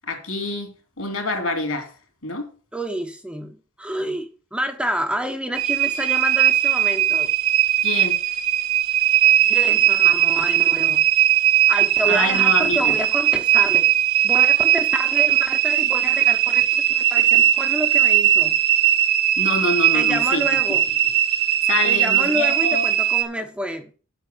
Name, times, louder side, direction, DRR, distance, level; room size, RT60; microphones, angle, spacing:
voice 1, 0.1-1.9 2.2-2.5 7.8-8.2 12.1-12.9 19.4-20.4 21.6-22.8, left 2 dB, 65° left, 3.0 m, -26 dB
voice 2, 2.7-7.3 9.4-11.0 11.7-13.9 14.2-18.6 19.9-20.9 21.8-23.9, equal, 5° right, 0.8 m, -29 dB
sound 1, 5.6-23.2, right 12 dB, 70° right, 1.8 m, -19 dB
8.2 x 5.9 x 7.8 m
head